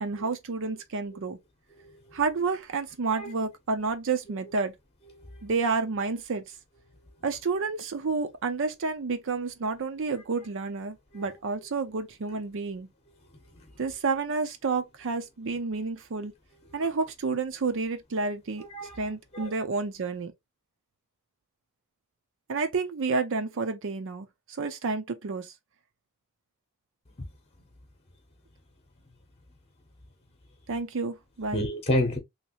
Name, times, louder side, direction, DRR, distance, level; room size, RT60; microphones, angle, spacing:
voice 1, 0.0-1.4 2.1-4.7 5.4-6.4 7.2-12.9 13.8-16.3 16.7-18.6 19.0-20.3 22.5-24.3 24.6-25.5 30.7-31.6, right 4 dB, 60° right, 0.6 m, -30 dB
voice 2, 5.2-5.5 11.1-11.3 13.5-13.7 16.8-16.9 18.6-19.1 19.3-19.5 31.5-32.2, left 1 dB, 30° left, 0.8 m, -31 dB
3.1 x 2.9 x 2.8 m
head